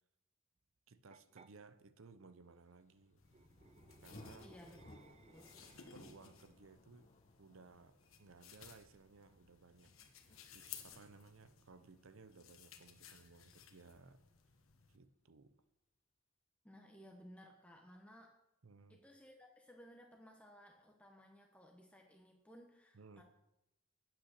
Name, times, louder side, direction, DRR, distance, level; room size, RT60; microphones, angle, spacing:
voice 1, 0.9-3.2 4.0-4.5 5.9-7.1 7.4-9.9 10.3-14.2 14.9-15.6 18.6-19.0 22.9-23.2, right 4 dB, 75° right, 12 dB, 0.7 m, -60 dB
sound 1, 1.1-1.5 3.2-6.3, right 4 dB, 30° right, 0.4 m, -65 dB
Thunder, 2.8-14.3, left 1 dB, 35° left, 1.0 m, -63 dB
sound 2, 3.2-15.0, left 8 dB, 80° left, 1.3 m, -59 dB
voice 2, 4.4-5.6 16.6-18.3 18.9-23.2, equal, 5° left, 1 dB, 1.0 m, -59 dB
8.8 x 8.5 x 6.6 m, 0.89 s
head